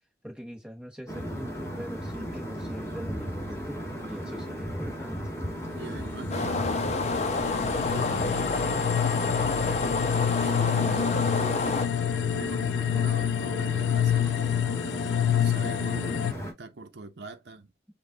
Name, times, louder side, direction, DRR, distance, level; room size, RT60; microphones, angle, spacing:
voice 1, 0.2-5.2 14.2-14.3, equal, 5° right, 1.0 m, -42 dB
sound 1, 1.1-16.5, equal, 15° left, 1.5 m, -36 dB
sound 2, 5.7-16.3, left 9 dB, 80° left, 0.3 m, -28 dB
voice 2, 5.7-6.6 7.4-8.7 10.4-11.7 12.3-14.4 15.3-17.7, right 2 dB, 75° right, 0.7 m, -42 dB
sound 3, 6.3-11.9, left 3 dB, 40° left, 0.6 m, -29 dB
5.2 x 2.3 x 3.8 m
head